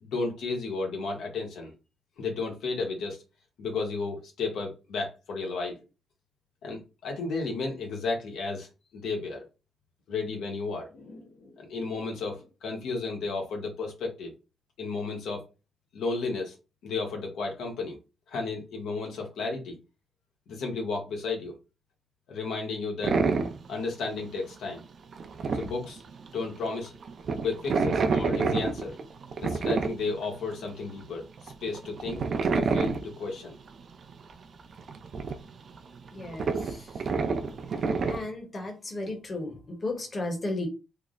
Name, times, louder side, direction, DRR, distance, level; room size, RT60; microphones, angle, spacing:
voice 1, 0.0-1.7 2.2-3.2 3.6-5.8 6.6-8.7 8.9-9.4 10.1-14.3 14.8-15.4 15.9-16.6 16.8-18.0 18.3-19.8 20.5-21.5 22.3-23.2 23.7-24.8 25.5-26.0 26.3-26.9 27.4-29.0 29.4-32.2 32.5-33.5, left 3 dB, 80° left, 1 dB, 1.0 m, -33 dB
sound 1, 23.0-23.7 24.0-24.5 24.8-24.9 25.1-26.6 26.9-30.6 31.0-31.1 31.4-33.2 33.6-33.7 34.1-34.3 34.6-38.2, right 4 dB, 50° right, 0.5 m, -28 dB
voice 2, 36.1-36.9 38.1-40.7, left 2 dB, 30° left, 3 dB, 1.1 m, -34 dB
3.4 x 2.0 x 3.7 m, 0.29 s
cardioid pair, 110°, 0 cm